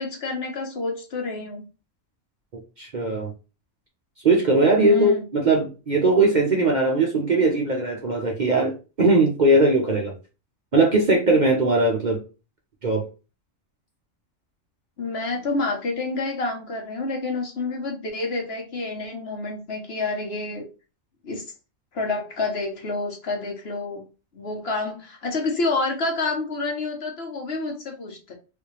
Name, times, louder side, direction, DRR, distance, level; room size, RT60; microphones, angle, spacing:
voice 1, 0.0-1.6 4.8-5.2 15.0-20.7 21.2-21.4 21.9-24.0 24.3-28.3, left 3 dB, 55° left, 2 dB, 1.0 m, -28 dB
voice 2, 2.8-3.3 4.2-10.1 10.7-12.2 12.8-13.0, right 2 dB, 45° right, 0 dB, 0.7 m, -20 dB
3.3 x 2.7 x 3.1 m, 0.32 s
omnidirectional pair, 1.4 m